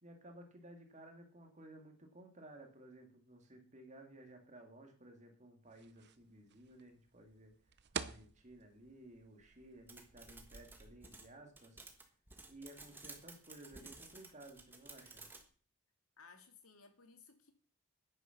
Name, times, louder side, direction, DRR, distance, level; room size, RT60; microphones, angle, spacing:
voice 1, 0.0-7.5 7.9-11.8 12.5-15.2, right 1 dB, 30° right, 2.2 m, -56 dB
sound 1, 5.7-11.0, right 6 dB, 50° right, 0.8 m, -49 dB
sound 2, 9.9-15.4, right 3 dB, 10° right, 1.4 m, -55 dB
voice 2, 16.2-17.5, left 5 dB, 75° left, 2.1 m, -60 dB
9.9 x 9.7 x 5.9 m
head